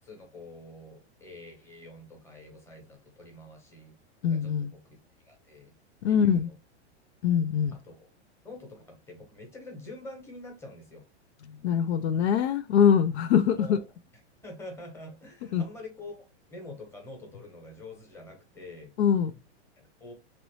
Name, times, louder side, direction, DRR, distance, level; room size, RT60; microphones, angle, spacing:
voice 1, 0.0-3.9 4.3-5.0 5.3-5.7 6.1-6.5 7.8-8.1 8.4-11.0 13.6-13.8 14.4-16.2 16.5-18.9 19.8-20.1, left 2 dB, 5° left, 0.9 m, -46 dB
voice 2, 4.2-4.7 6.0-6.5 7.2-7.7 11.5-13.8 15.5-15.6 19.0-19.3, left 8 dB, 70° left, 0.5 m, -23 dB
3.0 x 2.5 x 3.0 m
hypercardioid pair, 140°, 34 cm